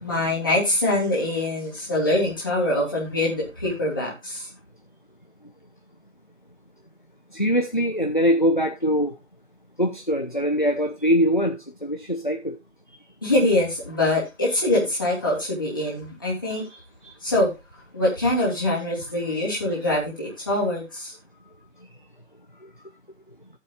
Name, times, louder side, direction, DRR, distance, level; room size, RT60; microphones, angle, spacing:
voice 1, 0.0-4.5 13.2-16.7 17.2-17.5 17.9-21.1, left 1 dB, 15° left, 3.2 m, -24 dB
voice 2, 7.3-9.2 9.8-12.6 16.6-17.2 22.6-22.7, equal, 35° left, 0.7 m, -23 dB
17.0 x 7.5 x 2.5 m
figure-of-eight pair, 165°, 41 cm